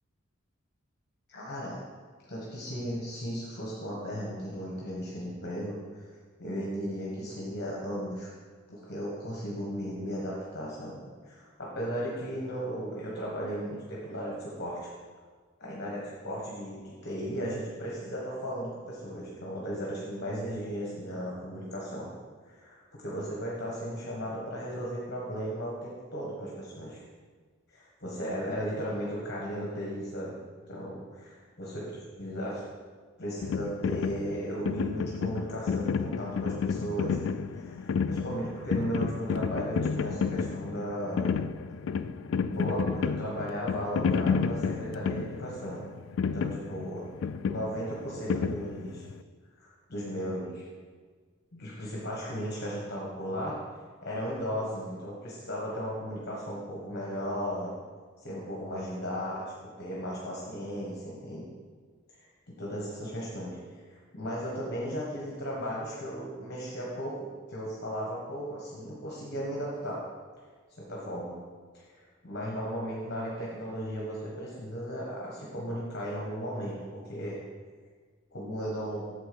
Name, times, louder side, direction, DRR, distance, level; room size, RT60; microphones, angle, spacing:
voice 1, 1.3-1.8 2.3-6.1 6.4-8.3 8.7-11.0 11.2-14.9 15.6-22.1 22.5-27.0 27.7-30.4 30.7-31.3 31.6-31.8 32.2-32.6 33.2-37.2 37.5-41.3 42.4-45.8 46.2-47.0 47.4-49.0 49.6-50.6 51.5-53.6 54.0-57.7 58.2-61.4 62.1-70.0 70.8-71.3 71.9-76.7 77.0-77.4 78.3-79.0, equal, 50° left, -4 dB, 1.4 m, -36 dB
sound 1, 33.4-49.2, left 6 dB, 65° left, 0.3 m, -31 dB
8.4 x 3.8 x 6.9 m, 1.5 s
head